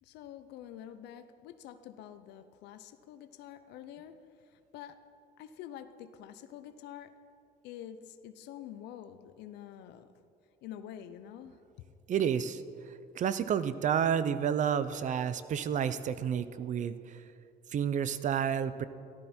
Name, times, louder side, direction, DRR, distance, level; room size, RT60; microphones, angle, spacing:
voice 1, 0.0-5.0 5.4-7.1 7.6-10.1 10.6-11.6, left 10 dB, 85° left, 10 dB, 0.7 m, -47 dB
voice 2, 12.1-17.2 17.7-18.8, right 8 dB, 45° right, 13 dB, 0.6 m, -30 dB
14.5 x 12.5 x 4.4 m, 2.4 s
cardioid pair, 110°, 17 cm